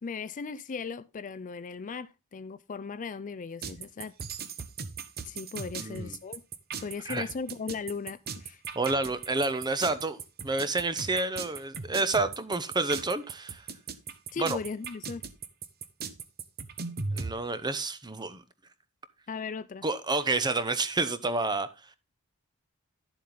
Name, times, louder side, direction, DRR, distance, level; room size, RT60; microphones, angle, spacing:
voice 1, 0.0-4.1 5.2-6.4 6.8-8.6 14.3-15.2 19.3-19.8, left 5 dB, 35° left, 0.4 m, -37 dB
sound 1, 3.6-17.3, right 5 dB, 45° right, 1.0 m, -38 dB
voice 2, 5.8-6.2 7.0-7.3 8.7-13.6 14.4-14.6 17.1-18.4 19.8-21.7, right 3 dB, 20° right, 0.8 m, -29 dB
11.0 x 7.5 x 3.8 m
head